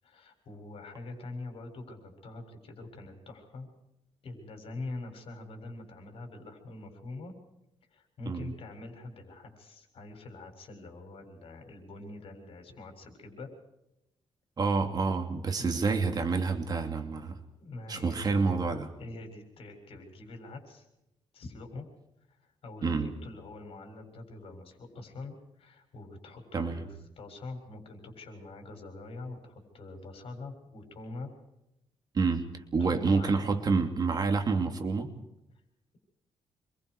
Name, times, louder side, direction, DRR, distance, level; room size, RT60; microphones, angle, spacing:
voice 1, 0.0-3.7 4.2-7.3 7.9-13.5 15.6-15.8 17.6-18.3 19.0-20.9 21.3-21.9 22.3-31.3 32.8-33.6 35.5-35.6, left 2 dB, 60° left, 4 dB, 7.4 m, -44 dB
voice 2, 14.6-17.4 17.9-18.9 22.8-23.1 26.5-26.8 32.1-32.4 32.7-35.1, right 4 dB, 40° right, 5 dB, 2.8 m, -28 dB
27.5 x 24.5 x 5.0 m, 0.86 s
wide cardioid pair, 145°, 11 cm